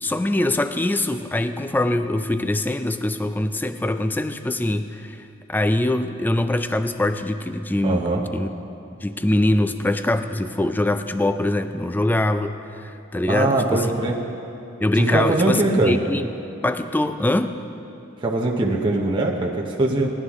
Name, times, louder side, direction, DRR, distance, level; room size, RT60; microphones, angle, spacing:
voice 1, 0.0-5.2 5.5-8.5 9.0-14.1 14.8-16.3 16.6-17.5, left 1 dB, 10° left, 10 dB, 0.3 m, -23 dB
voice 2, 7.8-8.2 13.3-14.1 14.9-16.0 18.2-20.1, right 2 dB, 25° right, -3 dB, 0.8 m, -21 dB
18.0 x 11.0 x 3.6 m, 2.8 s
head